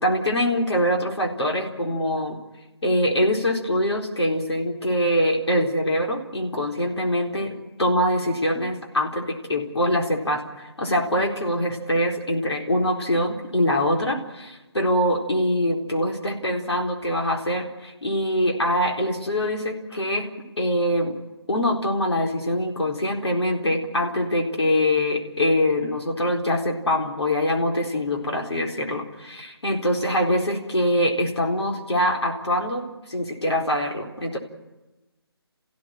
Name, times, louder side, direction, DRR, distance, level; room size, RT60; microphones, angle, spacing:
voice 1, 0.0-2.4 2.8-20.3 20.6-21.1 21.5-34.4, equal, 90° left, 1 dB, 4.1 m, -24 dB
29.0 x 16.0 x 9.1 m, 1.1 s
hypercardioid pair, 175°, 14 cm